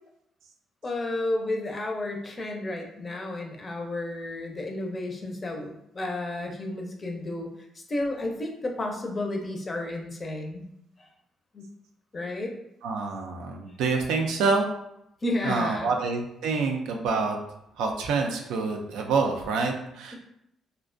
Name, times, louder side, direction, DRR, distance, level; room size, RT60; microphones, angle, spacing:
voice 1, 0.8-7.5 7.9-10.7 11.0-11.1 11.5-11.7 12.1-12.5 15.2-16.0, left 2 dB, 35° left, 2 dB, 0.4 m, -32 dB
voice 2, 12.8-14.7 15.4-17.4 17.8-20.1, right 4 dB, 90° right, 2 dB, 0.3 m, -27 dB
2.4 x 2.1 x 2.4 m, 0.80 s
cardioid pair, 90°, 0 cm